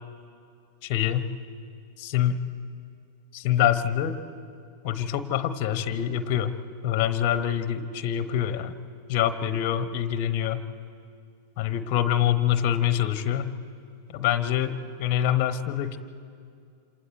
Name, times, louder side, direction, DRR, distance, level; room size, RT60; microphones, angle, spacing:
voice 1, 0.8-1.3 2.0-2.4 3.3-4.2 4.8-6.5 6.8-8.7 9.1-10.6 11.6-13.5 14.1-16.0, left 10 dB, 45° left, 12 dB, 0.9 m, -25 dB
27.5 x 27.0 x 4.5 m, 2.3 s
figure-of-eight pair, 90°, 0 cm